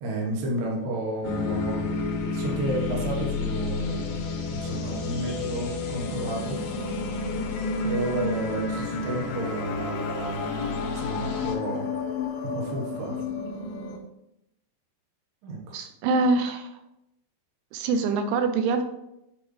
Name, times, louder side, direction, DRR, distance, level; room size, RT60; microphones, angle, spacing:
voice 1, 0.0-1.9 2.3-4.2 4.5-6.6 7.8-11.9 12.5-13.2 15.4-15.8, right 2 dB, 60° right, -2 dB, 2.6 m, -31 dB
sound 1, 1.2-11.5, left 4 dB, 90° left, 1.8 m, -32 dB
sound 2, 6.0-14.0, left 3 dB, 60° left, 3.2 m, -32 dB
voice 2, 15.7-16.8 17.7-18.9, right 3 dB, 80° right, 7 dB, 3.0 m, -24 dB
10.5 x 5.8 x 3.4 m, 0.84 s
omnidirectional pair, 5.6 m